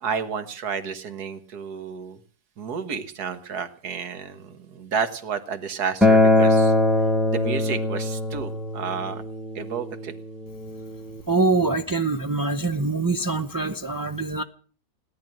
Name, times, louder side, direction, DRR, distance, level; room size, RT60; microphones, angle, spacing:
voice 1, 0.0-2.2 2.6-6.7 7.3-9.2 9.6-10.2, right 6 dB, 70° right, 10 dB, 1.9 m, -31 dB
Acoustic guitar, 6.0-11.2, left 2 dB, ahead, 1.1 m, -22 dB
voice 2, 11.3-14.4, right 3 dB, 30° right, 6 dB, 0.3 m, -24 dB
17.5 x 10.5 x 7.7 m, 0.43 s
omnidirectional pair, 1.7 m